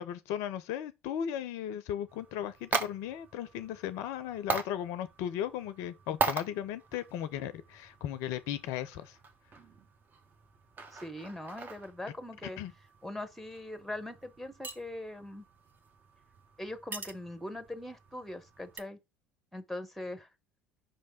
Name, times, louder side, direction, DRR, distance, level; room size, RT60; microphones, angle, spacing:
voice 1, 0.0-9.2 12.6-12.7, left 10 dB, 60° left, 0.5 m, -36 dB
sound 1, 2.1-18.8, right 4 dB, 30° right, 1.0 m, -41 dB
voice 2, 10.9-12.6 13.0-15.4 16.6-19.0 19.5-20.3, left 1 dB, ahead, 1.1 m, -41 dB
5.4 x 3.2 x 5.4 m
figure-of-eight pair, 65°, 6 cm